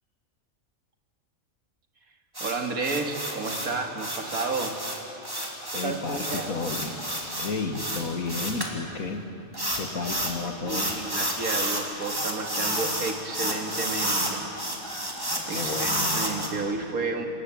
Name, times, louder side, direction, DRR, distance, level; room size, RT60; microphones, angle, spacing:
sound 1, 2.4-8.7 9.5-10.4 10.7-16.5, right 1 dB, 15° right, 3.1 m, -30 dB
voice 1, 2.4-4.8 5.7-6.6 10.4-14.5 14.9-15.2 15.5-17.3, right 3 dB, 90° right, 4 dB, 2.5 m, -32 dB
voice 2, 5.7-6.9 7.4-9.2 9.8-10.9 15.5-16.3, left 4 dB, 80° left, 7 dB, 2.2 m, -32 dB
27.5 x 21.5 x 8.5 m, 2.8 s
omnidirectional pair, 1.4 m